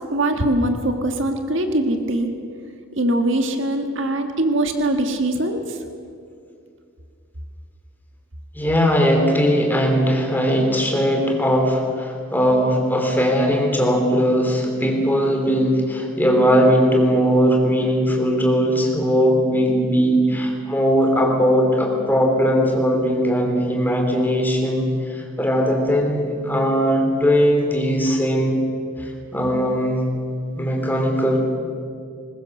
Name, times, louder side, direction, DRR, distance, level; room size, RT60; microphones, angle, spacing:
voice 1, 0.1-2.3 3.0-5.8, right 1 dB, 65° right, 5 dB, 1.7 m, -22 dB
voice 2, 8.5-28.6 29.0-30.0 30.6-31.4, equal, 10° left, 2 dB, 2.9 m, -19 dB
21.0 x 21.0 x 6.6 m, 2.3 s
head